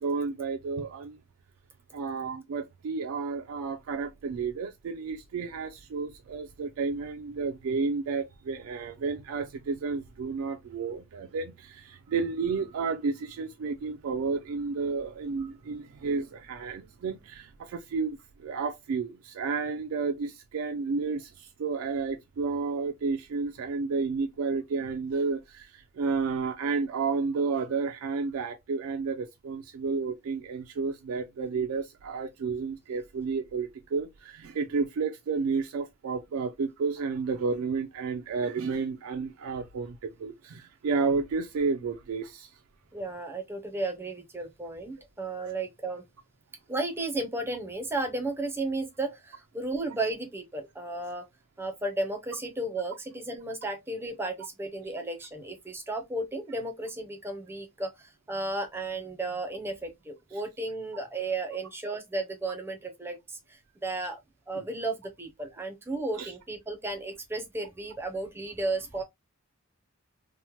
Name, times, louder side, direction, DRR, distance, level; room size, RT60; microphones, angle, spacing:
voice 1, 0.0-1.2 1.9-42.5 45.4-45.5 64.6-64.7 66.2-66.3, right 4 dB, 75° right, 0.3 m, -31 dB
voice 2, 42.9-46.0 46.7-51.2 51.6-64.2 64.5-69.0, right 2 dB, 10° right, 0.5 m, -34 dB
2.9 x 2.0 x 2.8 m
head